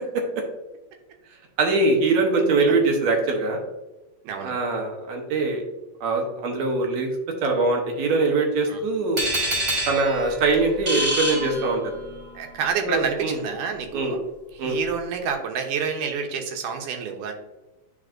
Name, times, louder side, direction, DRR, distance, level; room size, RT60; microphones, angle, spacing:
voice 1, 1.6-3.6 4.4-5.7 6.0-7.1 7.4-9.3 9.9-11.8 12.9-13.4 13.9-14.2 14.6-14.8, right 3 dB, 70° right, 1 dB, 2.2 m, -22 dB
voice 2, 4.2-4.5 8.7-8.8 12.4-14.2 14.6-17.3, right 6 dB, 90° right, 4 dB, 2.4 m, -28 dB
sound 1, 9.2-12.2, right 1 dB, 30° right, 1.7 m, -27 dB
10.0 x 4.5 x 2.5 m, 1.1 s
omnidirectional pair, 3.5 m